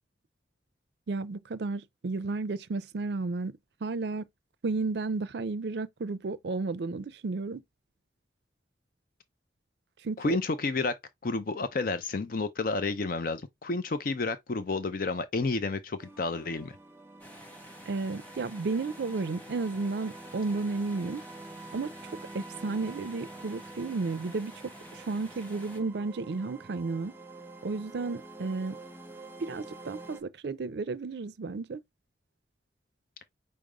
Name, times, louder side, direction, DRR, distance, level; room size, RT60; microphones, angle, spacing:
voice 1, 1.1-4.3 4.6-7.6 10.0-10.4 17.9-21.2 21.7-21.9 22.3-27.1 27.6-28.8 29.4-31.8, right 3 dB, 65° right, 0.5 m, -33 dB
voice 2, 10.2-11.0 11.2-16.8, left 3 dB, 50° left, 0.5 m, -30 dB
sound 1, 16.0-30.2, right 2 dB, 15° right, 0.6 m, -47 dB
sound 2, 17.2-25.8, equal, 10° left, 1.2 m, -50 dB
5.2 x 2.0 x 4.7 m
head